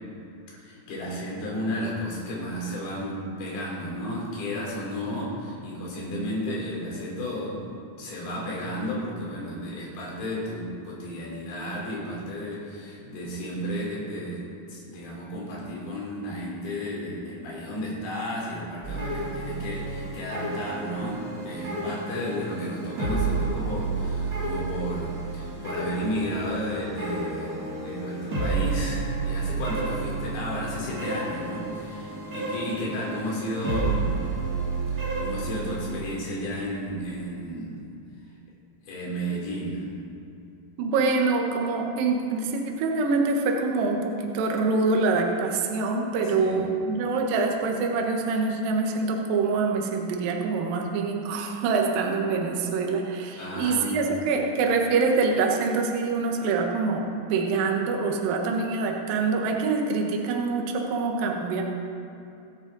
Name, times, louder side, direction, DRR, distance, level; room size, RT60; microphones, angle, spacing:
voice 1, 0.5-34.2 34.9-37.8 38.8-39.9 46.2-46.8 53.4-54.1, equal, 85° left, -5 dB, 5.4 m, -33 dB
sound 1, 18.8-36.0, right 3 dB, 35° right, 1.4 m, -31 dB
voice 2, 40.8-57.0 57.3-61.6, right 4 dB, 65° right, 1 dB, 2.7 m, -25 dB
24.0 x 8.1 x 4.1 m, 2.7 s
omnidirectional pair, 5.0 m